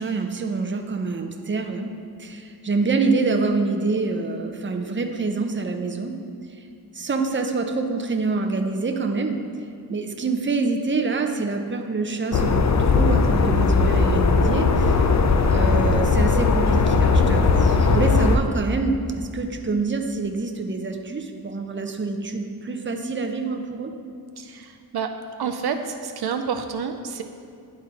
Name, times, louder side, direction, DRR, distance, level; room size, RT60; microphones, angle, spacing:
voice 1, 0.0-1.9 2.2-6.1 6.9-9.4 9.9-15.0 15.5-23.9, right 3 dB, 30° right, 5 dB, 0.6 m, -26 dB
sound 1, 12.3-18.4, left 4 dB, 45° left, 0.5 m, -18 dB
voice 2, 24.4-25.1 25.4-27.2, right 6 dB, 70° right, 6 dB, 0.5 m, -29 dB
10.5 x 4.1 x 4.0 m, 2.5 s
wide cardioid pair, 70°, 39 cm